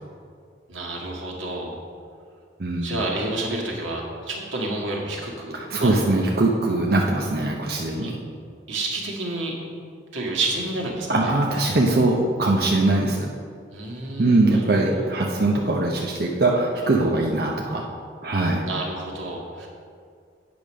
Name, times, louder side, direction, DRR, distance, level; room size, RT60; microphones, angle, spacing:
voice 1, 0.7-1.8 2.8-5.9 8.0-8.1 8.7-9.6 10.1-11.3 13.7-15.1 18.6-19.7, right 2 dB, 85° right, -2 dB, 1.8 m, -30 dB
voice 2, 2.6-3.0 5.5-8.2 11.1-13.3 14.2-17.8 18.2-18.6, right 2 dB, 50° right, -2 dB, 0.7 m, -21 dB
8.7 x 5.2 x 6.3 m, 2.2 s
head